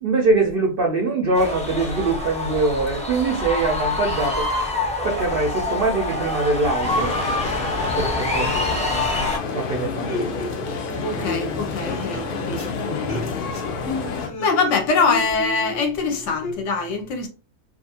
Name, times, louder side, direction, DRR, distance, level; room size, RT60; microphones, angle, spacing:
voice 1, 0.0-4.4 5.0-7.1 8.0-8.8 9.5-10.5, right 3 dB, 65° right, 0.6 m, -23 dB
sound 1, 1.3-9.4, left 2 dB, 10° left, 0.3 m, -26 dB
sound 2, 6.8-14.3, left 4 dB, 90° left, 0.4 m, -29 dB
sound 3, 10.0-16.5, left 2 dB, 40° left, 0.9 m, -32 dB
voice 2, 11.0-13.3 14.2-17.3, left 4 dB, 70° left, 0.8 m, -24 dB
2.5 x 2.4 x 2.7 m
omnidirectional pair, 1.5 m